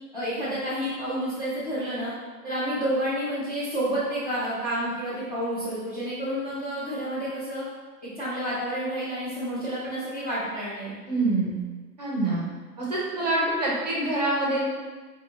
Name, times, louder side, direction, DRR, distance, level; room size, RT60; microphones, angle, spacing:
voice 1, 0.1-2.1 2.4-7.6 8.0-11.0, equal, 25° left, -12 dB, 0.4 m, -29 dB
voice 2, 11.1-11.6 12.0-12.4 12.8-14.6, right 2 dB, 25° right, -5 dB, 0.5 m, -25 dB
4.2 x 2.5 x 2.7 m, 1.4 s
hypercardioid pair, 165°, 50 cm